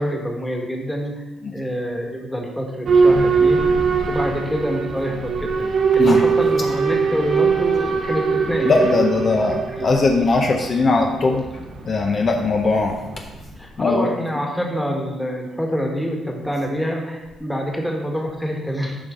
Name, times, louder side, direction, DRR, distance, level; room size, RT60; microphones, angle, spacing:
voice 1, 0.0-1.3 1.5-3.8 4.1-9.3 9.7-10.0 13.6-19.0, equal, 5° left, 1 dB, 1.5 m, -26 dB
Boat Water vehicle / Alarm, 2.8-13.5, right 5 dB, 55° right, 0.8 m, -21 dB
voice 2, 8.6-11.5 11.8-13.0 13.8-14.1, left 3 dB, 45° left, 2 dB, 0.7 m, -19 dB
8.6 x 5.3 x 3.7 m, 1.1 s
cardioid pair, 90°, 0 cm